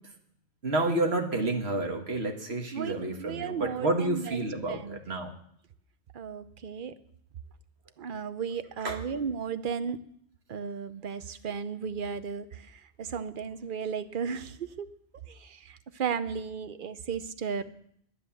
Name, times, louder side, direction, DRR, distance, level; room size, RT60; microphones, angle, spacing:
voice 1, 0.6-5.3 8.8-9.0, right 2 dB, 70° right, 4 dB, 1.8 m, -29 dB
voice 2, 2.7-4.4 4.7-5.0 6.1-6.9 8.0-10.0 10.5-14.9 15.3-17.6, right 6 dB, 55° right, 12 dB, 0.9 m, -35 dB
10.5 x 10.0 x 7.0 m, 0.67 s
omnidirectional pair, 1.1 m